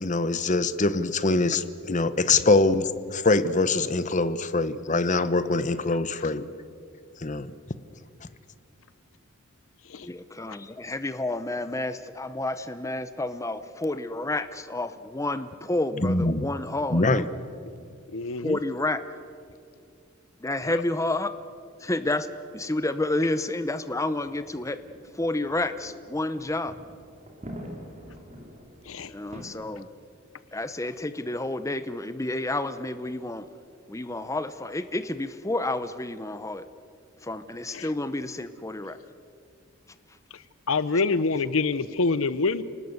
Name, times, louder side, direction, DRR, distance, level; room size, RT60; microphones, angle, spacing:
voice 1, 0.0-6.5 7.2-7.5 16.0-16.5 16.9-17.2, left 3 dB, 35° left, 13 dB, 1.0 m, -23 dB
voice 2, 10.0-17.3 18.4-19.2 20.4-21.3 21.8-22.3 22.5-24.8 25.1-26.7 29.1-29.9 30.5-33.5 33.9-36.7 37.2-39.0 40.1-40.2, left 2 dB, 15° left, 11 dB, 0.8 m, -30 dB
voice 3, 18.1-18.6 28.9-29.1 40.7-42.6, left 3 dB, 70° left, 15 dB, 0.8 m, -25 dB
sound 1, 24.2-29.4, equal, 30° right, 3.3 m, -45 dB
29.5 x 19.5 x 8.1 m, 2.4 s
head